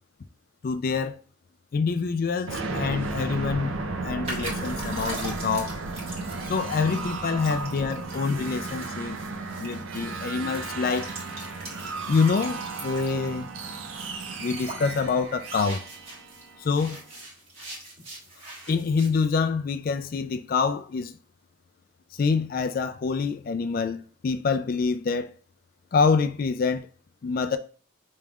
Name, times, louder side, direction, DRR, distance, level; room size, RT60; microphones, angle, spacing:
voice 1, 0.6-1.2 1.7-5.8 6.4-9.2 9.6-11.1 12.1-13.5 14.4-15.8 16.6-17.0 18.7-21.1 22.2-25.3 25.9-26.9 27.2-27.6, left 5 dB, 45° left, 0.3 m, -26 dB
sound 1, 2.5-17.1, right 3 dB, 80° right, 0.7 m, -34 dB
sound 2, 4.2-16.5 16.7-19.3, right 2 dB, 30° right, 1.5 m, -42 dB
5.2 x 3.2 x 2.3 m
head